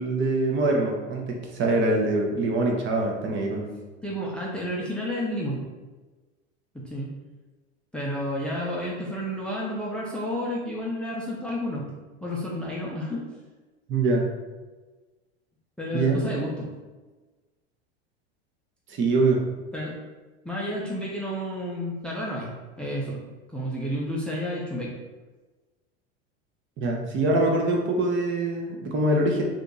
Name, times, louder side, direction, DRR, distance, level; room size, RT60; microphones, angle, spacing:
voice 1, 0.0-3.8 13.9-14.3 15.9-16.3 18.9-19.4 26.8-29.4, right 2 dB, 35° right, 1 dB, 0.7 m, -24 dB
voice 2, 4.0-5.6 6.7-7.1 7.9-11.8 12.2-13.2 15.8-16.7 19.7-20.0 20.4-22.5 22.8-23.2 23.5-25.0, equal, 5° left, -4 dB, 0.6 m, -31 dB
2.9 x 2.5 x 3.7 m, 1.3 s
hypercardioid pair, 100°, 33 cm